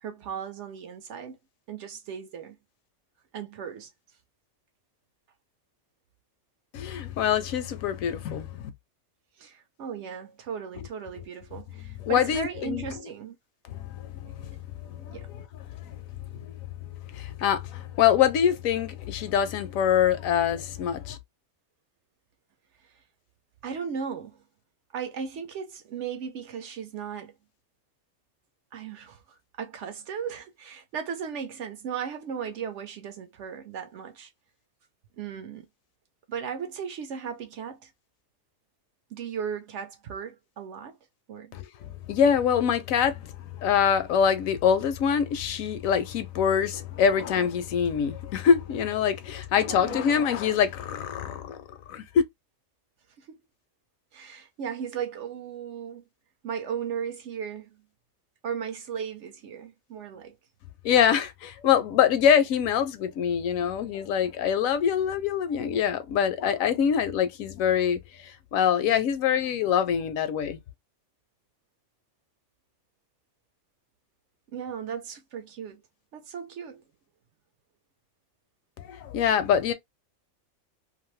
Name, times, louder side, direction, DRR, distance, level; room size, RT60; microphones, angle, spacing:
voice 1, 0.0-1.4 1.7-2.6 3.3-3.9 9.4-13.4 15.1-15.3 23.6-24.4 24.9-27.3 28.7-34.3 35.2-35.7 36.3-37.9 39.1-41.0 41.3-41.5 49.7-50.1 53.3-53.4 54.1-56.0 56.4-57.8 58.4-60.3 74.5-75.8 76.1-76.8, right 7 dB, 65° right, 0.8 m, -36 dB
voice 2, 6.7-8.7 12.0-12.8 13.7-15.4 15.7-15.9 16.4-16.5 17.1-21.2 41.5-51.6 51.9-52.0 60.8-70.6 78.8-79.7, left 8 dB, 75° left, 1.0 m, -25 dB
2.6 x 2.5 x 3.0 m
omnidirectional pair, 1.5 m